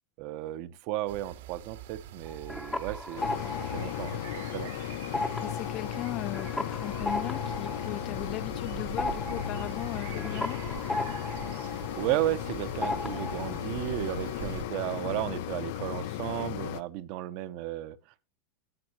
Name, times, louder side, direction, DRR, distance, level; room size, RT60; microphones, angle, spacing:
voice 1, 0.2-4.2 4.5-4.7 12.0-18.0, right 14 dB, 55° right, 0.9 m, -34 dB
sound 1, 1.1-14.7, right 11 dB, 85° right, 2.1 m, -44 dB
sound 2, 2.3-4.7 5.0-12.5 12.8-13.6, left 2 dB, 5° left, 0.9 m, -36 dB
sound 3, 3.2-16.8, left 12 dB, 65° left, 0.8 m, -36 dB
voice 2, 5.4-10.6, left 14 dB, 40° left, 0.5 m, -38 dB
17.0 x 6.2 x 3.0 m
supercardioid pair, 135°, 0 cm